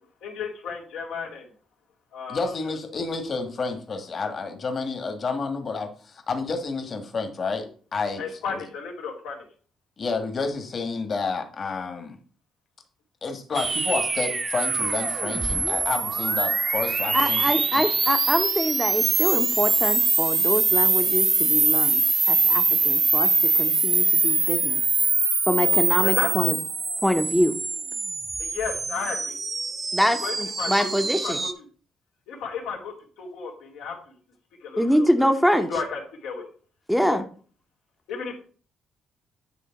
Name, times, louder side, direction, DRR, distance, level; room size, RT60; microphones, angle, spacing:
voice 1, 0.2-1.5 2.1-2.5 8.2-9.5 26.0-26.3 28.4-29.4 30.2-31.5 32.3-34.0 34.6-36.5 37.0-37.2 38.1-38.3, left 5 dB, 90° left, 0 dB, 2.2 m, -33 dB
voice 2, 2.3-7.7 7.9-8.6 10.0-12.2 13.2-17.8, left 4 dB, 45° left, 5 dB, 1.6 m, -30 dB
sound 1, 13.5-31.5, right 3 dB, 30° right, 0.9 m, -23 dB
voice 3, 17.1-23.3 23.6-24.8 25.5-26.6 27.0-27.6 29.9-31.4 34.8-35.7 36.9-37.2, equal, ahead, 6 dB, 0.8 m, -24 dB
9.3 x 3.3 x 5.8 m, 0.42 s
cardioid pair, 90°, 0 cm